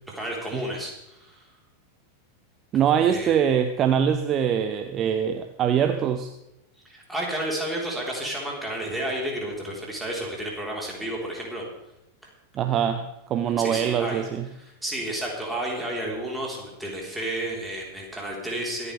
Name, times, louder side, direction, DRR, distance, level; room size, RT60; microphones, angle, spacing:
voice 1, 0.1-1.5 3.0-3.4 6.8-11.6 13.6-14.2 14.6-18.9, right 1 dB, 5° right, -3 dB, 3.9 m, -31 dB
voice 2, 2.7-6.3 12.5-14.5, right 8 dB, 30° right, 8 dB, 0.8 m, -23 dB
24.0 x 9.6 x 3.4 m, 0.87 s
figure-of-eight pair, 90°, 0 cm